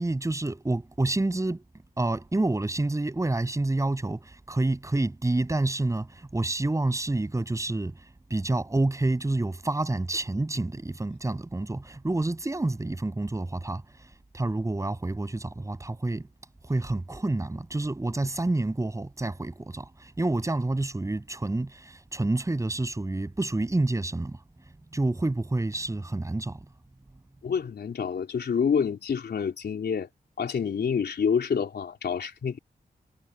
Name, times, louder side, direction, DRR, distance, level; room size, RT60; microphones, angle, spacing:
voice 1, 0.0-1.6 2.0-8.0 8.3-13.8 14.3-16.3 16.6-24.4 24.9-26.6, right 2 dB, 20° right, 7.2 m, -28 dB
voice 2, 27.4-30.1 30.4-32.6, left 6 dB, 85° left, 3.8 m, -27 dB
wide cardioid pair, 165°, 17 cm